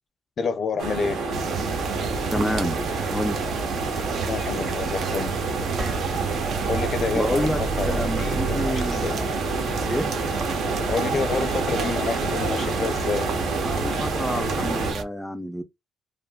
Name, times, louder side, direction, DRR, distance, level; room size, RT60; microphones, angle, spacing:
voice 1, 0.4-1.2 4.3-5.4 6.7-9.2 10.9-13.3, left 4 dB, 50° left, 0.6 m, -28 dB
sound 1, 0.8-14.9, right 3 dB, 85° right, 0.9 m, -28 dB
sound 2, 1.3-15.0, right 5 dB, 65° right, 0.5 m, -32 dB
voice 2, 2.3-2.8 3.1-3.4 7.1-9.3 9.9-10.1 13.6-15.6, equal, ahead, 0.4 m, -28 dB
sound 3, 5.8-12.5, right 4 dB, 45° right, 1.1 m, -36 dB
3.3 x 2.1 x 2.2 m
cardioid pair, 90°, 0 cm